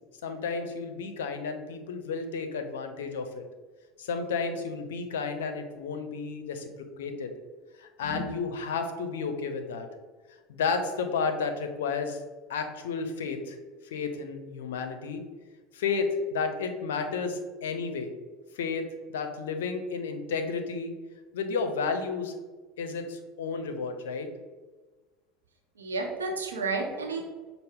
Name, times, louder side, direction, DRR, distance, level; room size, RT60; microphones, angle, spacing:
voice 1, 0.2-3.4 4.0-6.7 7.0-7.3 7.8-9.9 10.5-12.2 12.5-13.6 13.8-15.2 15.7-18.1 18.6-20.9 21.3-22.3 22.8-24.3, left 5 dB, 75° left, 6 dB, 0.5 m, -32 dB
voice 2, 25.8-27.3, right 3 dB, 85° right, 2 dB, 0.7 m, -32 dB
5.6 x 2.0 x 3.5 m, 1.3 s
hypercardioid pair, 75°, 0 cm